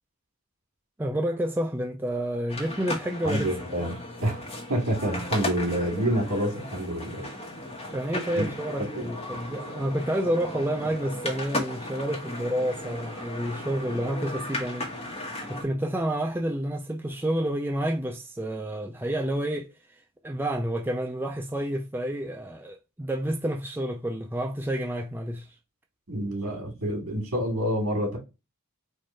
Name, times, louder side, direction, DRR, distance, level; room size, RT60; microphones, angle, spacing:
voice 1, 1.0-3.5 7.9-14.9 15.5-19.7 20.2-25.5, right 1 dB, 10° right, 0.4 m, -29 dB
sound 1, 2.5-15.6, left 1 dB, 30° left, 1.2 m, -36 dB
voice 2, 3.2-3.9 4.2-4.4 4.7-7.3 8.3-8.5 8.9-9.1 26.1-28.2, right 1 dB, 75° right, 2.4 m, -27 dB
4.5 x 2.5 x 4.5 m
head